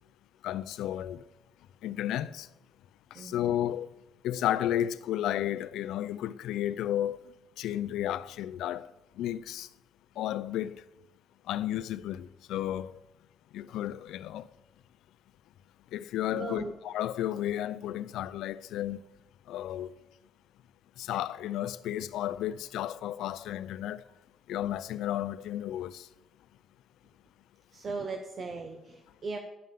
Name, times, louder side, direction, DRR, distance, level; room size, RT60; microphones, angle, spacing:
voice 1, 0.4-1.2 1.8-2.5 3.2-3.9 4.2-7.2 7.6-8.9 9.2-9.7 10.2-10.8 11.5-12.9 13.5-14.5 15.9-19.0 19.5-19.9 21.0-24.0 24.5-26.1, left 12 dB, 85° left, 0.4 m, -32 dB
voice 2, 3.1-3.5 16.3-16.7 27.7-29.4, right 4 dB, 50° right, 1.0 m, -38 dB
10.5 x 5.6 x 7.6 m
cardioid pair, 90°, 0 cm